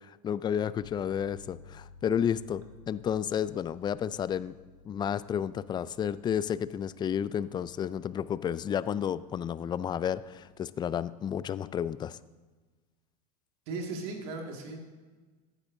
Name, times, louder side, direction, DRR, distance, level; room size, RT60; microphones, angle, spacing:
voice 1, 0.0-4.6 4.9-12.2, left 8 dB, 20° left, 17 dB, 0.3 m, -31 dB
Bass guitar, 0.8-10.5, left 4 dB, 80° left, 1.6 m, -56 dB
voice 2, 13.7-14.8, right 3 dB, 65° right, 2 dB, 2.0 m, -37 dB
14.5 x 9.7 x 2.7 m, 1.3 s
hypercardioid pair, 85°, 21 cm